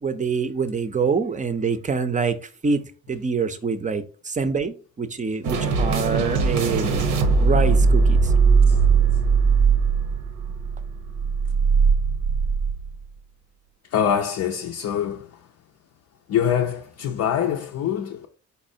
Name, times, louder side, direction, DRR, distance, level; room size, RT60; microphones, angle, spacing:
voice 1, 0.0-8.3, right 5 dB, 25° right, 0.5 m, -26 dB
sound 1, 5.4-12.9, right 5 dB, 85° right, 0.8 m, -20 dB
voice 2, 13.9-15.3 16.3-18.3, left 9 dB, 60° left, 0.5 m, -24 dB
4.1 x 4.1 x 2.7 m
cardioid pair, 90°, 30 cm